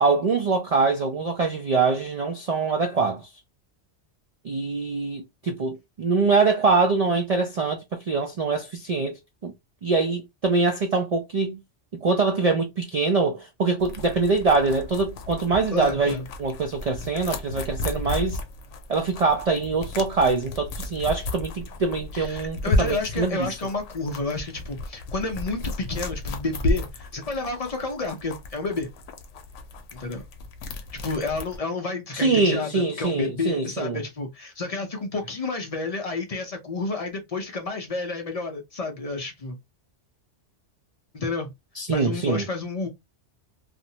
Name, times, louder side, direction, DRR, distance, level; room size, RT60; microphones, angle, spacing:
voice 1, 0.0-3.3 4.4-9.2 9.4-9.5 9.8-11.6 11.9-18.4 18.9-23.5 32.1-34.0 41.8-42.4, right 4 dB, 75° right, 0.3 m, -24 dB
sound 1, 13.8-31.6, left 2 dB, 90° left, 0.9 m, -33 dB
voice 2, 15.7-16.2 22.1-28.9 29.9-30.2 31.0-39.6 41.1-41.5 41.9-42.9, left 3 dB, 50° left, 0.4 m, -30 dB
2.5 x 2.0 x 2.7 m
omnidirectional pair, 1.2 m